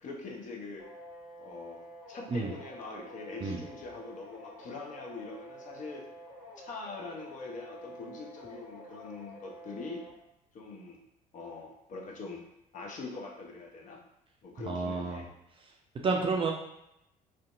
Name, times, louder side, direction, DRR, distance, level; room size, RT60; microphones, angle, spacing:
voice 1, 0.0-0.9 1.4-1.8 2.1-6.1 6.6-10.0 10.5-11.0 11.3-12.4 12.7-14.0 14.4-15.3, left 3 dB, 40° left, -1 dB, 0.6 m, -43 dB
sound 1, 0.8-10.1, equal, 85° left, 0.6 m, -49 dB
voice 2, 14.7-15.2 16.0-16.5, right 4 dB, 25° right, 0 dB, 0.4 m, -30 dB
2.6 x 2.2 x 2.5 m, 0.83 s
figure-of-eight pair, 55°, 20 cm